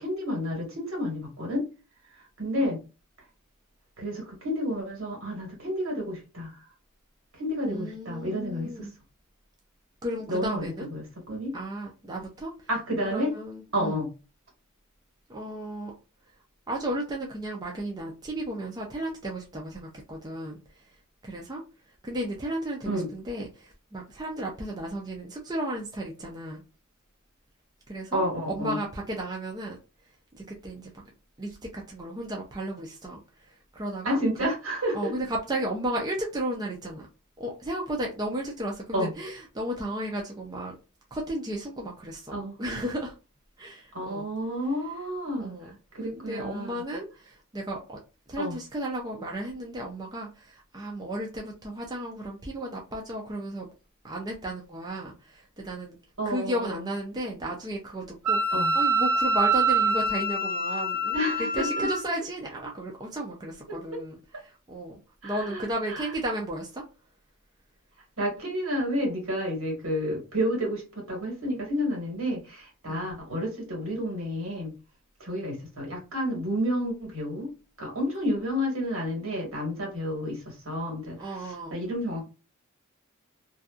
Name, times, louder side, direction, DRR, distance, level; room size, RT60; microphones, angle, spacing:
voice 1, 0.0-1.6 2.4-2.8 4.0-6.6 7.4-8.9 10.3-11.6 12.7-13.3 13.7-14.1 22.8-23.1 28.1-28.8 34.0-35.1 38.9-39.1 42.3-42.6 43.9-45.5 45.9-46.8 48.4-48.6 56.2-56.8 58.5-58.7 61.1-61.8 63.7-63.8 65.2-66.0 68.2-74.7 75.2-77.5 77.8-82.2, equal, 70° right, 1.4 m, -30 dB
voice 2, 7.7-8.9 10.0-10.9 11.5-12.5 13.0-14.0 15.3-15.9 16.7-20.6 21.2-21.6 22.0-26.6 27.9-29.8 30.3-31.1 31.4-33.2 33.7-34.2 34.9-37.1 37.4-40.8 41.1-43.1 43.6-44.3 45.4-45.7 46.1-48.0 48.3-53.7 54.0-56.0 56.2-61.2 61.5-66.8 72.9-73.1 81.2-81.8, right 1 dB, 20° right, 0.5 m, -34 dB
Wind instrument woodwind instrument, 58.3-62.0, right 2 dB, 90° right, 0.7 m, -25 dB
2.7 x 2.3 x 2.3 m
head